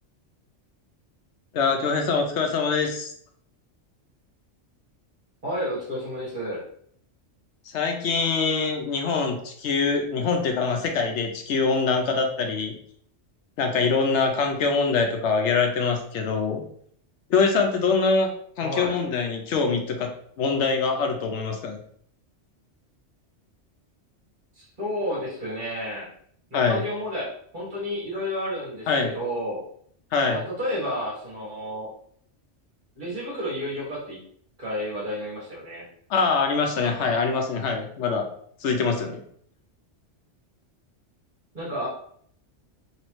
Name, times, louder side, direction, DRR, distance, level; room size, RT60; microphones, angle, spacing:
voice 1, 1.5-3.1 7.7-12.8 13.6-16.6 17.3-18.3 18.6-20.1 20.4-21.8 26.5-26.8 28.9-29.1 30.1-30.4 36.1-38.3 38.6-39.2, left 4 dB, 75° left, 4 dB, 0.9 m, -24 dB
voice 2, 5.4-6.6 18.6-19.0 24.5-26.1 26.5-29.6 30.3-31.9 32.9-34.2 34.6-35.9 41.5-41.9, equal, 45° right, -6 dB, 1.6 m, -31 dB
3.1 x 3.0 x 3.0 m, 0.63 s
omnidirectional pair, 1.2 m